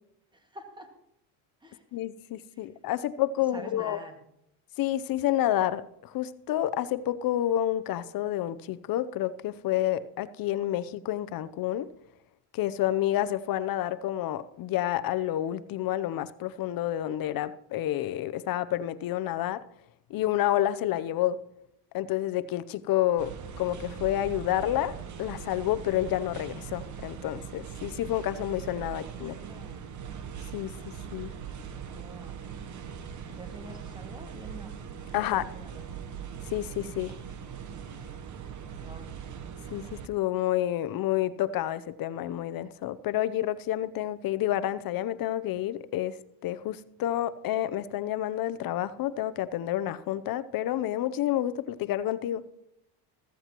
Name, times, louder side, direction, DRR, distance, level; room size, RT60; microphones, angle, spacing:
voice 1, 0.3-0.9 1.6-2.0 2.5-2.7 3.5-4.3 28.9-29.9 31.9-32.4 33.3-34.7 35.2-35.9 38.7-39.1, equal, 10° right, 2.0 m, -47 dB
voice 2, 1.9-4.0 4.8-11.9 12.5-19.6 20.1-21.4 21.9-29.3 30.5-30.7 31.1-31.3 35.1-35.4 36.5-37.1 39.7-46.2 46.4-52.4, left 13 dB, 50° left, 0.7 m, -29 dB
sound 1, 23.2-40.1, right 7 dB, 40° right, 1.0 m, -41 dB
14.5 x 14.0 x 3.0 m
supercardioid pair, 105°, 46 cm